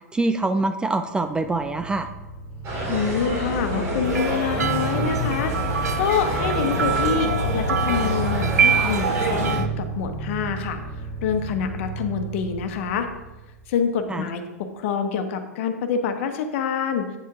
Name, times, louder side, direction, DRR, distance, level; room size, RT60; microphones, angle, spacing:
voice 1, 0.1-2.1 14.1-14.3, right 2 dB, 10° right, 8 dB, 0.4 m, -24 dB
sound 1, 1.2-14.0, right 2 dB, 25° left, 2.9 m, -32 dB
sound 2, 2.6-9.6, equal, 35° right, 3.1 m, -27 dB
voice 2, 2.9-5.5 6.0-10.8 11.2-13.1 13.7-17.1, left 7 dB, 50° left, 7 dB, 1.1 m, -26 dB
sound 3, 4.0-9.7, right 7 dB, 80° right, 0.4 m, -26 dB
8.6 x 7.3 x 3.6 m, 1.1 s
figure-of-eight pair, 100°, 9 cm